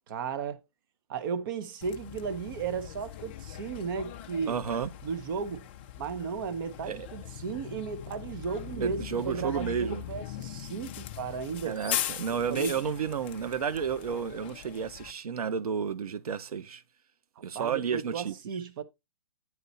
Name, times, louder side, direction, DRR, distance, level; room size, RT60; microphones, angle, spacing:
voice 1, 0.1-0.6 1.1-4.6 5.0-5.6 6.0-11.8 12.5-12.7 17.5-18.8, right 6 dB, 35° right, 0.8 m, -35 dB
Bus, 1.8-15.1, left 12 dB, 20° left, 0.4 m, -40 dB
voice 2, 4.5-4.9 6.9-7.1 8.7-10.0 11.6-16.8 17.4-18.3, right 7 dB, 90° right, 0.8 m, -31 dB
9.5 x 4.2 x 4.0 m
hypercardioid pair, 165°, 19 cm